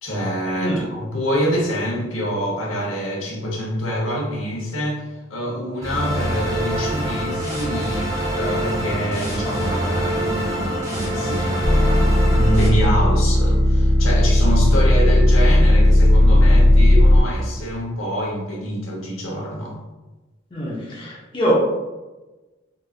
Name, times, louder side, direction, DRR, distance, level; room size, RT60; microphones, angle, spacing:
voice 1, 0.0-12.1 12.3-19.8, equal, 75° left, -3 dB, 1.0 m, -26 dB
voice 2, 0.6-0.9 20.5-21.5, equal, 25° left, -4 dB, 0.5 m, -24 dB
sound 1, 5.8-12.7, right 1 dB, 20° right, 0.8 m, -25 dB
sound 2, 11.6-17.2, left 1 dB, 60° left, 1.3 m, -14 dB
4.0 x 2.4 x 2.4 m, 1.1 s
head